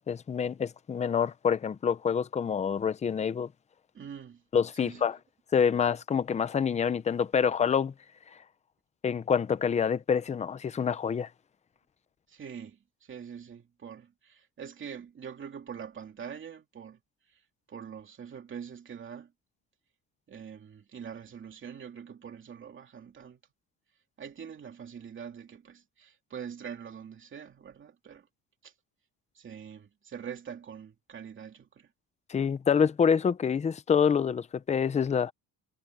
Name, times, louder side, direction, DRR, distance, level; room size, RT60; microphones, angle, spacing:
voice 1, 0.1-3.5 4.5-5.2 5.5-7.9 9.0-11.3 32.3-35.3, left 7 dB, 20° left, 0.5 m, -27 dB
voice 2, 3.9-4.4 4.7-5.1 12.3-17.0 17.3-17.4 17.7-19.3 20.3-23.4 24.2-28.3 28.6-28.7 29.3-31.9, right 7 dB, 30° right, 2.7 m, -44 dB
cardioid pair, 170°, 38 cm